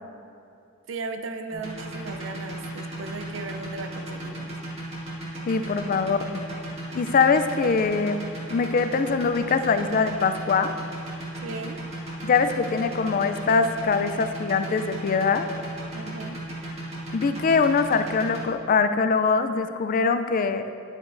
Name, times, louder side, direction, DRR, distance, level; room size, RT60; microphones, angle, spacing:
voice 1, 0.9-4.5 11.4-11.8 15.9-16.4, right 3 dB, 70° right, 7 dB, 0.5 m, -36 dB
sound 1, 1.5-18.4, right 1 dB, 35° right, 1.8 m, -35 dB
voice 2, 5.5-6.4 6.9-8.2 8.5-10.8 12.2-15.5 17.1-20.7, left 5 dB, 45° left, 10 dB, 0.3 m, -23 dB
10.0 x 8.8 x 2.6 m, 2.8 s
head